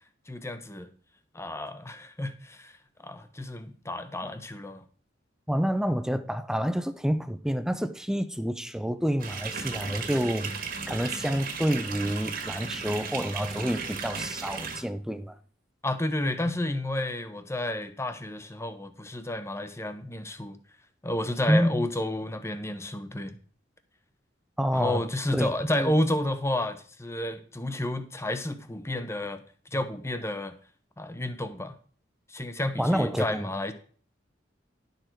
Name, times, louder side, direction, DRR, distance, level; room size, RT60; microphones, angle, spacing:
voice 1, 0.3-0.9 1.3-2.7 3.0-4.8 15.8-20.6 21.0-23.3 24.7-29.4 29.7-30.5 31.0-31.7 32.3-33.7, left 1 dB, 15° left, 0.9 m, -31 dB
voice 2, 5.5-10.6 10.9-15.4 21.5-21.9 24.6-25.1 25.3-25.9 32.8-33.5, equal, 5° right, 0.5 m, -28 dB
sound 1, 9.2-14.8, right 5 dB, 50° right, 1.8 m, -35 dB
11.5 x 6.7 x 4.6 m
head